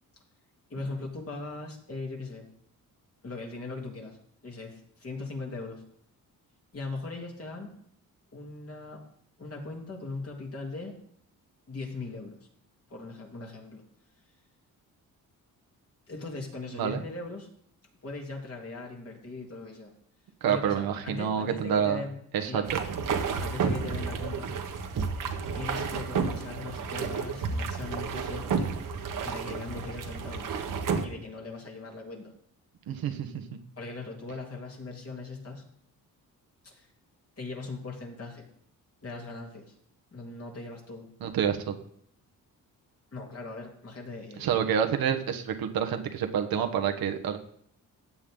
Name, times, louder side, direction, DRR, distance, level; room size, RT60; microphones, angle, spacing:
voice 1, 0.7-2.4 3.2-4.2 4.4-5.8 6.7-7.7 8.3-9.0 9.4-11.0 11.7-12.4 12.9-13.8 16.1-17.5 18.0-19.9 20.5-22.7 23.4-24.5 25.5-28.7 29.2-30.5 31.0-32.3 33.8-35.6 36.6-36.9 37.4-38.4 39.0-39.7 40.1-41.1 43.1-44.6, left 3 dB, 40° left, 0 dB, 3.2 m, -39 dB
voice 2, 16.7-17.0 20.4-22.0 22.3-22.8 32.9-33.3 41.2-41.7 44.4-47.4, right 8 dB, 90° right, 5 dB, 1.4 m, -28 dB
sound 1, 22.6-31.1, right 5 dB, 65° right, 1.4 m, -31 dB
15.0 x 8.5 x 3.9 m, 0.67 s
cardioid pair, 100°, 35 cm